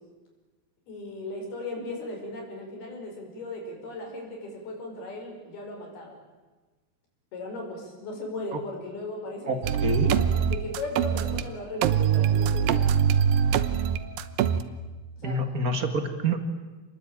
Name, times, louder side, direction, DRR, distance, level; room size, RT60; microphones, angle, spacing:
voice 1, 0.9-6.2 7.3-13.1 15.2-15.4, left 2 dB, 75° left, 1 dB, 7.0 m, -37 dB
voice 2, 9.5-10.2 15.2-16.4, right 2 dB, 40° right, 7 dB, 1.2 m, -27 dB
sound 1, 9.6-11.4 11.8-14.6, right 8 dB, 70° right, 2.5 m, -23 dB
27.5 x 20.5 x 8.9 m, 1.3 s
omnidirectional pair, 4.5 m